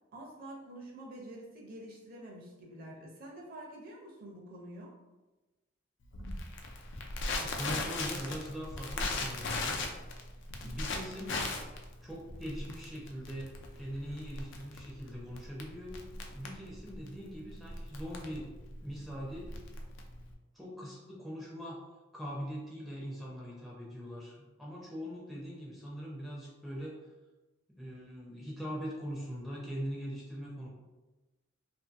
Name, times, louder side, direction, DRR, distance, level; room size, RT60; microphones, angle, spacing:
voice 1, 0.1-4.9 10.6-10.8, right 1 dB, 45° right, -2 dB, 0.6 m, -47 dB
Crackle, 6.1-20.3, left 3 dB, 60° left, 0.4 m, -38 dB
voice 2, 7.3-9.9 10.6-11.4 12.0-16.0 16.3-18.5 18.8-19.6 20.5-21.8 22.1-27.1 27.7-30.7, equal, ahead, -5 dB, 0.5 m, -41 dB
2.6 x 2.6 x 2.5 m, 1.1 s
head